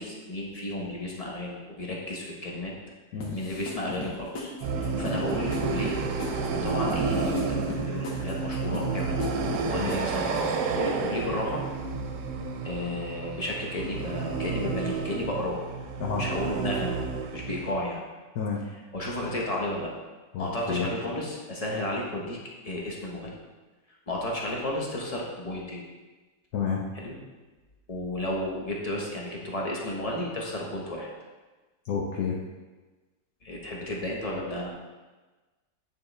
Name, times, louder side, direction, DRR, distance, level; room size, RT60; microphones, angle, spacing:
voice 1, 0.0-2.7 3.1-6.0 6.5-9.2 9.6-11.6 12.6-15.6 16.1-17.0 17.3-18.0 18.6-19.9 20.4-22.4 22.6-23.4 24.1-25.8 26.9-27.2 27.9-31.1 33.4-34.7, left 1 dB, 35° left, -2 dB, 0.6 m, -33 dB
sound 1, 3.2-10.6, left 3 dB, 85° left, 1.7 m, -39 dB
sound 2, 4.6-17.7, right 4 dB, 75° right, 1.2 m, -30 dB
voice 2, 20.3-20.9 26.5-26.8 31.9-32.4, left 6 dB, 70° left, -2 dB, 1.2 m, -29 dB
8.7 x 4.5 x 3.3 m, 1.3 s
omnidirectional pair, 1.9 m